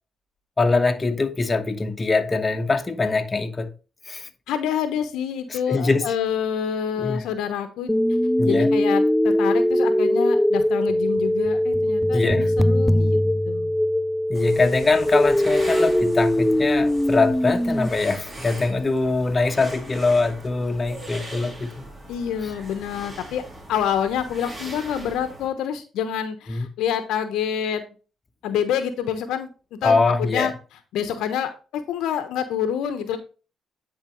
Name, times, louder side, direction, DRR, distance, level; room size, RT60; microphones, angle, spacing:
voice 1, 0.6-3.7 4.0-4.3 5.5-6.1 7.0-7.2 8.4-8.7 12.1-12.5 14.3-21.7 26.5-26.7 29.8-30.5, left 3 dB, 30° left, 1.2 m, -23 dB
voice 2, 4.5-8.0 8.4-13.2 13.4-13.7 22.1-23.4 23.7-27.8 28.4-30.5 30.9-33.2, left 8 dB, 80° left, 1.0 m, -27 dB
sound 1, 7.9-17.9, left 1 dB, 5° left, 0.4 m, -21 dB
sound 2, 14.3-25.5, right 1 dB, 25° right, 3.5 m, -40 dB
10.0 x 4.4 x 3.1 m
supercardioid pair, 65°, 0 cm